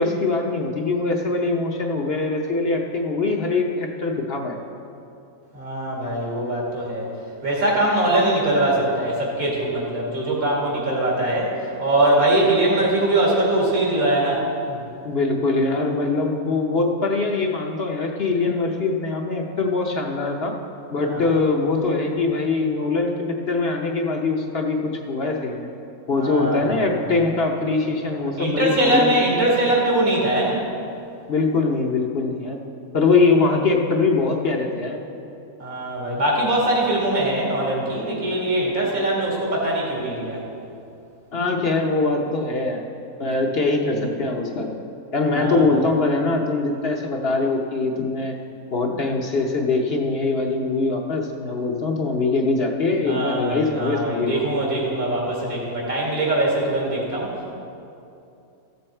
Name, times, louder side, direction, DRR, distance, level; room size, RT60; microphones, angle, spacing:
voice 1, 0.0-4.6 15.0-20.5 20.9-25.7 26.1-29.2 31.3-32.6 32.9-35.0 41.3-42.8 43.2-44.8 45.1-48.4 48.7-54.4, left 3 dB, 50° left, 1 dB, 0.9 m, -22 dB
voice 2, 5.5-7.1 7.4-14.8 21.0-21.2 26.1-27.2 28.4-30.6 35.6-40.4 45.3-45.8 53.1-57.5, right 1 dB, 80° right, -4 dB, 2.7 m, -22 dB
14.5 x 7.1 x 4.4 m, 2.7 s
omnidirectional pair, 1.5 m